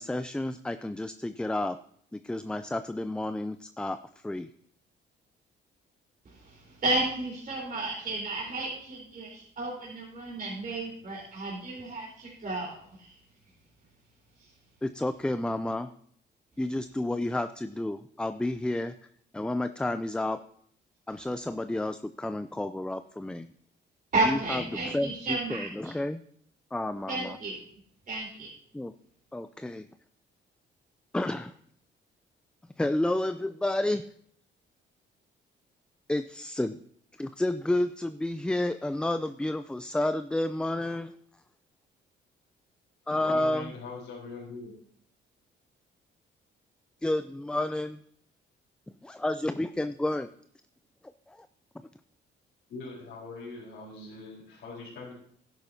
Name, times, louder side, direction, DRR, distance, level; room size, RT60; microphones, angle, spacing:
voice 1, 0.0-1.8 2.1-4.5 14.8-15.9 16.6-20.4 21.1-23.5 24.2-26.2 26.7-27.4 28.7-28.9 29.3-29.9 31.1-31.5 32.8-34.1 36.1-36.8 37.1-41.4 43.1-43.7 47.0-48.0 49.0-50.3 51.3-51.5, left 1 dB, 5° left, 11 dB, 0.3 m, -31 dB
voice 2, 6.2-13.2 14.4-14.6 24.1-25.9 27.1-27.6 28.1-28.5, right 2 dB, 45° right, -5 dB, 3.9 m, -32 dB
voice 3, 43.3-44.7 52.7-55.1, left 3 dB, 70° left, -8 dB, 4.0 m, -42 dB
12.5 x 10.5 x 2.7 m, 0.64 s
cardioid pair, 90°, 20 cm